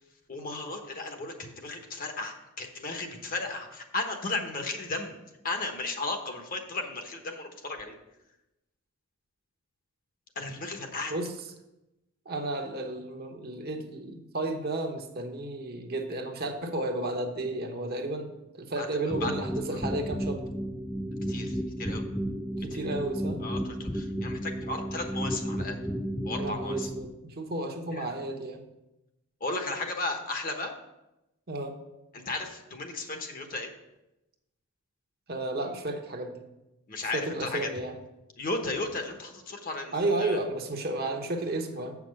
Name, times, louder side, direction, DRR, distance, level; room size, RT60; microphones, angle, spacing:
voice 1, 0.3-5.2 5.4-8.0 10.4-11.1 18.8-18.9 19.2-19.3 19.7-19.8 21.3-22.1 22.7-23.0 23.4-25.8 26.2-26.9 27.9-28.1 29.4-30.7 32.3-33.7 36.9-37.7 38.4-40.4, left 3 dB, 40° left, 4 dB, 1.0 m, -35 dB
voice 2, 12.3-20.4 22.6-23.4 26.4-28.6 31.5-31.8 35.3-36.4 37.1-38.0 39.9-42.0, right 2 dB, 45° right, 4 dB, 1.0 m, -32 dB
sound 1, 19.1-27.0, equal, ahead, 0.3 m, -33 dB
7.6 x 6.0 x 6.4 m, 0.94 s
head